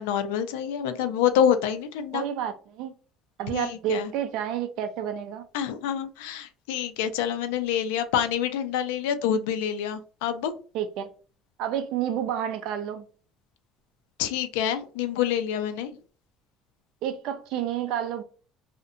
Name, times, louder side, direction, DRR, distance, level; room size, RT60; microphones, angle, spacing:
voice 1, 0.0-2.2 3.5-4.1 5.5-10.5 14.2-15.9, left 9 dB, 85° left, 0.4 m, -27 dB
voice 2, 2.1-2.9 3.4-5.4 10.7-11.1 11.6-13.1 17.0-18.2, right 10 dB, 75° right, 0.4 m, -30 dB
2.6 x 2.1 x 2.5 m
supercardioid pair, 85°, 0 cm